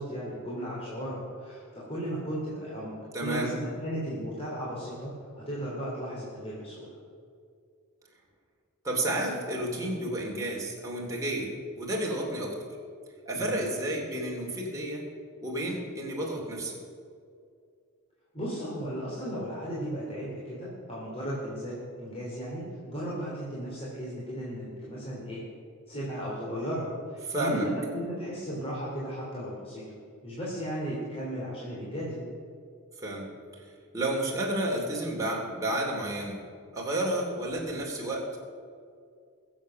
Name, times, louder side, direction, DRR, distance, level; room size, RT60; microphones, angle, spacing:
voice 1, 0.0-7.0 13.3-13.6 18.3-25.4 25.9-29.8 30.2-32.3, equal, 25° left, -6 dB, 3.0 m, -35 dB
voice 2, 3.1-3.5 8.8-12.6 13.3-15.0 15.4-16.8 27.3-27.7 33.0-33.3 33.9-36.4 36.7-38.5, right 1 dB, 15° right, -3 dB, 2.7 m, -31 dB
22.0 x 7.5 x 6.4 m, 2.3 s
head